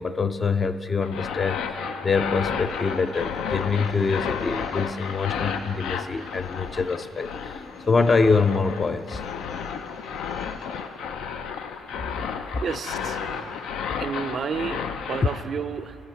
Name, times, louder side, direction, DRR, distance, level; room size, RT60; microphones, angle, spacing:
voice 1, 0.0-9.2, left 4 dB, 35° left, 10 dB, 0.4 m, -25 dB
sound 1, 1.0-15.4, left 7 dB, 90° left, 0.5 m, -32 dB
Keyboard (musical), 1.6-4.2, right 1 dB, 70° left, 2.8 m, -48 dB
sound 2, 2.6-10.8, left 3 dB, 50° left, 2.4 m, -47 dB
voice 2, 12.6-13.5 14.0-16.0, right 6 dB, 55° right, 12 dB, 0.4 m, -31 dB
16.5 x 5.7 x 7.0 m, 2.7 s
cardioid pair, 90°, 0 cm